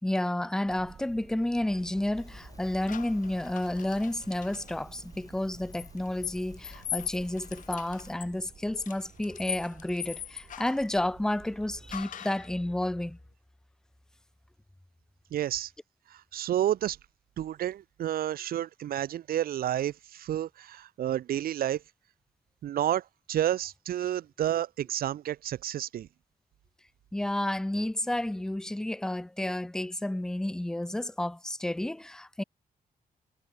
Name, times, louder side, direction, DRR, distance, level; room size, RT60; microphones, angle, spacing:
voice 1, 0.0-13.2 27.1-32.4, left 1 dB, 5° left, 0.5 m, -31 dB
sound 1, 0.6-12.0, right 7 dB, 45° right, 5.4 m, -53 dB
Crackle, 2.1-8.2, left 4 dB, 25° left, 3.0 m, -52 dB
sound 2, 2.9-4.7 5.7-10.9 11.9-12.5, left 10 dB, 60° left, 0.6 m, -40 dB
voice 2, 15.3-15.7 16.1-17.0 17.4-21.8 22.6-26.1, right 11 dB, 80° right, 0.6 m, -30 dB
wide cardioid pair, 175°, 15 cm